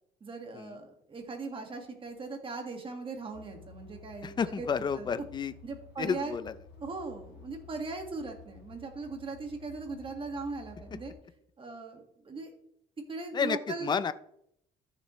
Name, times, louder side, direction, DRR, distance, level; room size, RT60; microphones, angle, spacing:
voice 1, 0.2-4.7 5.0-5.1 5.6-6.3 6.8-11.1 11.6-12.5 13.1-13.9, right 3 dB, 30° right, 4 dB, 1.9 m, -39 dB
sound 1, 3.3-11.1, left 3 dB, 80° left, 1.7 m, -53 dB
voice 2, 4.2-5.5 6.0-6.6 13.3-14.1, left 6 dB, 25° left, 13 dB, 0.5 m, -31 dB
13.0 x 6.4 x 3.2 m, 0.72 s
cardioid pair, 110°, 17 cm